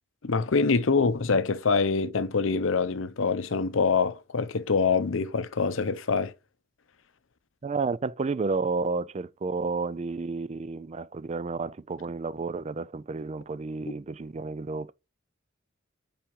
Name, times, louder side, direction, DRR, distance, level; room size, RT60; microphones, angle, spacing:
voice 1, 0.2-6.3, left 4 dB, 80° left, 0.7 m, -25 dB
voice 2, 7.6-14.9, right 4 dB, 35° right, 0.4 m, -31 dB
5.6 x 5.0 x 5.3 m
head